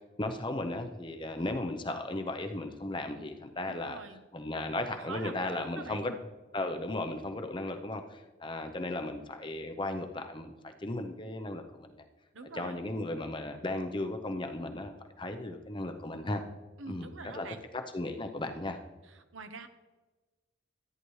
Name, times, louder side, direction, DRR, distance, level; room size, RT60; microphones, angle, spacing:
voice 1, 0.2-4.0 4.3-6.1 6.5-12.0 12.5-16.4 16.9-17.5 17.7-18.8, left 2 dB, 25° left, 6 dB, 0.6 m, -36 dB
voice 2, 3.7-4.2 4.9-6.1 12.3-12.8 16.8-17.6 19.0-19.7, right 4 dB, 75° right, 8 dB, 0.8 m, -45 dB
13.5 x 9.6 x 3.2 m, 1.3 s
head